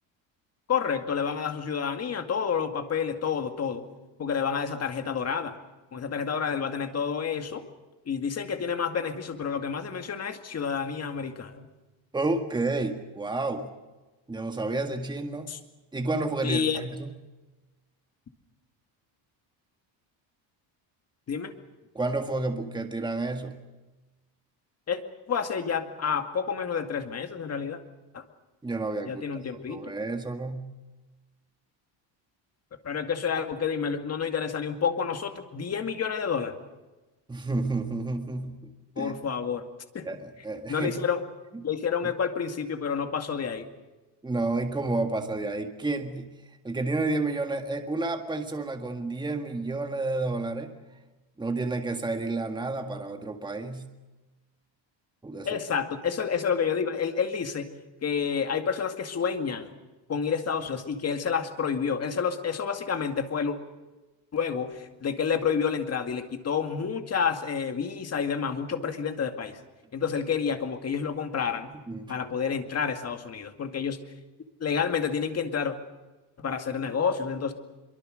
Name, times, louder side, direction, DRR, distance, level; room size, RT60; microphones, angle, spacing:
voice 1, 0.7-3.9 4.2-5.5 5.9-7.6 8.1-11.7 15.5-15.6 16.4-16.8 21.3-21.5 24.9-25.0 25.3-27.8 28.1-28.2 29.1-29.9 32.8-36.6 39.0-39.6 39.9-40.0 40.7-41.2 41.6-43.7 55.4-57.7 58.0-59.7 60.1-63.6 64.3-69.6 69.9-71.7 72.1-74.0 74.6-75.7 76.4-77.5, left 6 dB, 30° left, 6 dB, 2.2 m, -29 dB
voice 2, 12.1-13.7 14.3-15.5 15.9-17.1 21.9-23.6 28.6-29.2 29.7-30.7 37.3-38.7 39.0-39.2 40.0-41.0 41.5-41.6 44.2-46.3 46.6-50.7 51.4-53.9 55.2-55.6 71.9-72.1, right 2 dB, 10° right, 5 dB, 1.7 m, -30 dB
24.5 x 23.5 x 6.5 m, 1.1 s
cardioid pair, 145°, 47 cm